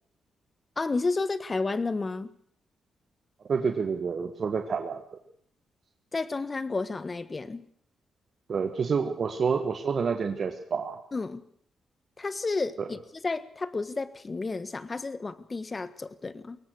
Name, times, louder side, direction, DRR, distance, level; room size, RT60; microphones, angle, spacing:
voice 1, 0.8-2.3 6.1-7.6 11.1-11.4 12.2-13.0 13.2-16.6, left 3 dB, 35° left, 14 dB, 1.5 m, -31 dB
voice 2, 3.5-5.0 8.5-11.0 12.8-12.9, right 5 dB, 55° right, 6 dB, 1.5 m, -28 dB
22.0 x 18.5 x 6.5 m, 0.64 s
supercardioid pair, 55°, 0 cm